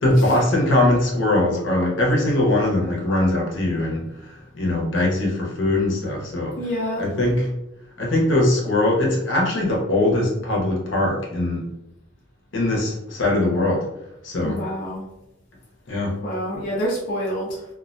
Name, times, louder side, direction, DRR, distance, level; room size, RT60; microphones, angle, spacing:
voice 1, 0.0-6.6 7.0-7.5 8.0-11.7 12.5-13.9 14.2-14.6 15.9-16.1, left 1 dB, 75° left, -2 dB, 0.8 m, -21 dB
voice 2, 6.6-7.0 14.4-15.0 16.2-17.7, equal, 45° left, -5 dB, 0.5 m, -27 dB
2.3 x 2.1 x 2.5 m, 0.85 s
head